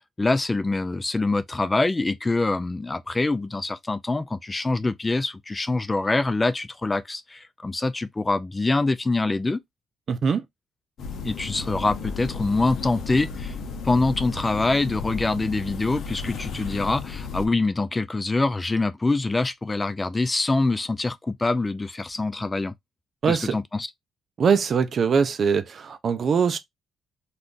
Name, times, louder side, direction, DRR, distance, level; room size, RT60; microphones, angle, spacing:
voice 1, 0.2-9.6 11.2-13.5 13.8-22.7 23.3-23.9, left 2 dB, 20° left, 0.3 m, -25 dB
voice 2, 10.1-10.4 23.2-23.5 24.4-26.6, right 6 dB, 50° right, 0.5 m, -22 dB
sound 1, 11.0-17.5, left 5 dB, 65° left, 0.7 m, -34 dB
2.5 x 2.4 x 3.6 m
cardioid pair, 90°, 0 cm